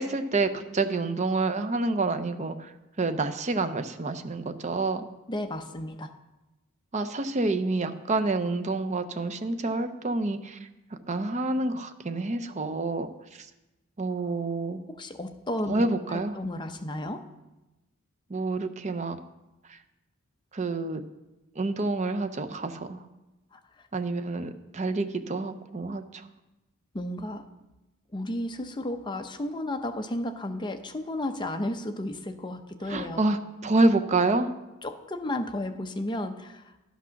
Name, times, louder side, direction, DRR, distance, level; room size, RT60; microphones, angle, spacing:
voice 1, 0.0-2.7 3.0-5.0 6.9-10.6 11.1-13.1 14.0-14.8 15.7-16.3 18.3-19.2 19.7-19.8 20.5-21.0 21.6-23.0 23.9-26.2 32.9-34.5, right 3 dB, 35° right, 9 dB, 0.6 m, -28 dB
voice 2, 5.3-6.1 14.9-17.3 23.5-23.6 26.9-27.5 28.1-33.2 34.8-36.8, left 1 dB, 20° left, 7 dB, 0.6 m, -33 dB
11.5 x 6.1 x 5.7 m, 1.0 s
head